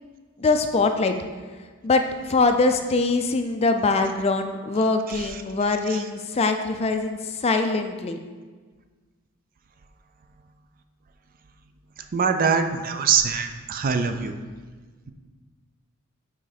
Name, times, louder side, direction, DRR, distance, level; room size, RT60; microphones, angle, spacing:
voice 1, 0.4-1.1 1.8-2.0 2.3-8.2, left 3 dB, 30° left, 7 dB, 0.4 m, -23 dB
voice 2, 5.1-5.4 5.9-6.0 12.1-14.3, right 6 dB, 40° right, 7 dB, 0.4 m, -23 dB
9.1 x 3.7 x 4.0 m, 1.4 s
head